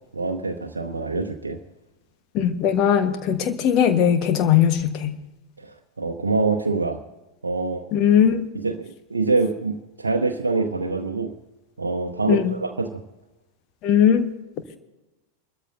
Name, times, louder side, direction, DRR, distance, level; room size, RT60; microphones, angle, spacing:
voice 1, 0.1-1.6 5.6-7.0 7.4-7.9 8.5-11.3 11.8-13.0, right 3 dB, 75° right, 3 dB, 0.8 m, -25 dB
voice 2, 2.3-5.1 7.9-8.5 12.3-12.6 13.8-14.3, left 9 dB, 40° left, 9 dB, 1.3 m, -19 dB
28.0 x 13.0 x 2.7 m, 1.0 s
figure-of-eight pair, 90°, 0 cm